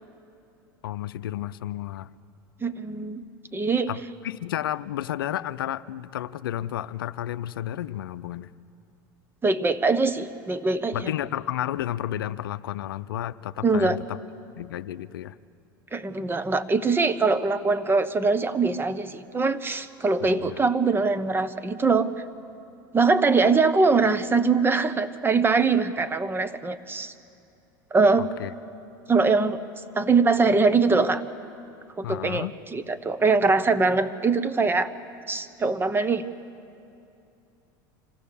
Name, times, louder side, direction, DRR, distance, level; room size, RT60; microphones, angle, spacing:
voice 1, 0.8-2.1 3.9-8.5 10.9-14.2 14.6-15.4 20.2-20.7 28.2-28.5 32.0-32.6, left 12 dB, 85° left, 13 dB, 0.5 m, -32 dB
voice 2, 2.6-3.2 3.5-3.9 9.4-11.0 13.6-14.0 15.9-22.1 22.9-27.1 27.9-28.3 29.1-29.6 29.9-31.2 32.0-32.5 32.7-34.9 35.3-36.2, right 4 dB, 20° right, 12 dB, 1.0 m, -22 dB
26.0 x 16.0 x 6.9 m, 2.7 s
hypercardioid pair, 90°, 11 cm